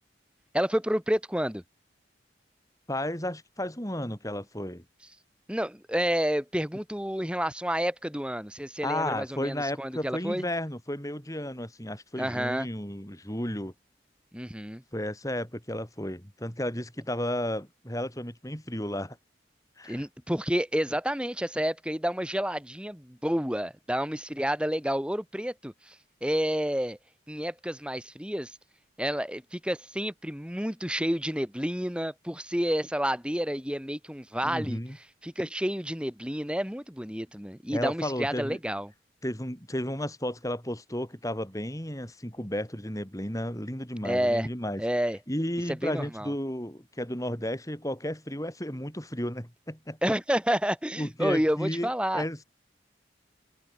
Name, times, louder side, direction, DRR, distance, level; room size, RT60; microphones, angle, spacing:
voice 1, 0.5-1.6 5.5-10.4 12.2-12.7 14.3-14.8 19.9-25.9 26.2-27.0 27.3-28.6 29.0-34.8 35.2-38.9 44.0-44.5 44.8-45.2 45.7-46.3 50.0-52.2, equal, 5° right, 3.0 m, -29 dB
voice 2, 2.9-4.8 8.8-13.7 14.9-19.2 19.8-20.0 34.4-35.0 37.7-38.6 39.2-44.8 45.3-50.0 51.0-52.4, left 1 dB, 20° left, 7.5 m, -33 dB
head